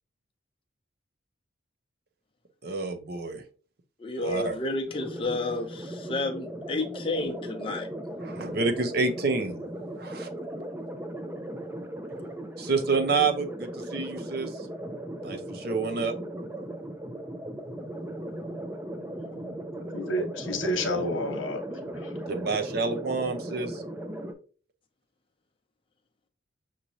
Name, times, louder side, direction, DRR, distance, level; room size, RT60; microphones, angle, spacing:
voice 1, 2.6-3.4 4.2-4.6 8.2-9.6 10.0-10.3 12.6-14.5 15.2-16.2 22.3-23.8, right 4 dB, 50° right, 0.6 m, -28 dB
voice 2, 4.0-7.9, left 2 dB, 25° left, 0.7 m, -31 dB
sound 1, 4.9-24.3, right 1 dB, 10° right, 0.4 m, -37 dB
voice 3, 19.3-22.1, left 1 dB, 80° left, 1.0 m, -31 dB
5.9 x 3.0 x 2.6 m
head